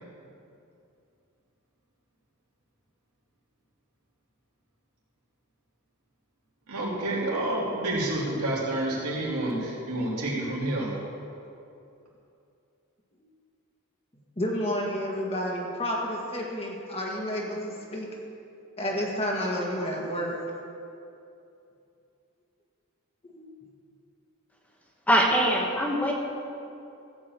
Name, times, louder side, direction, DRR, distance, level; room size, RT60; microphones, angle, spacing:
voice 1, 6.7-10.9, right 1 dB, 90° right, -5 dB, 3.1 m, -29 dB
voice 2, 14.4-18.1 18.8-20.4 23.2-23.4, equal, 30° left, -2 dB, 1.9 m, -30 dB
voice 3, 25.1-26.1, equal, 5° left, -1 dB, 1.2 m, -22 dB
14.5 x 5.4 x 8.1 m, 2.6 s
head